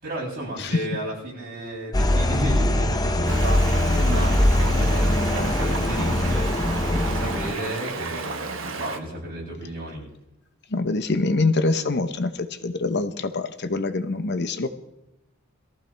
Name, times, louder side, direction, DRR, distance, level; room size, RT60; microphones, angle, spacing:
voice 1, 0.0-6.5 6.9-10.0, right 1 dB, 45° right, -5 dB, 7.7 m, -33 dB
sound 1, 1.9-7.5, left 1 dB, 20° left, 0.7 m, -22 dB
Stream, 3.2-9.0, right 4 dB, 65° right, 1.2 m, -32 dB
voice 2, 10.7-14.7, left 3 dB, 50° left, 9 dB, 0.9 m, -24 dB
22.0 x 14.5 x 3.4 m, 0.88 s
head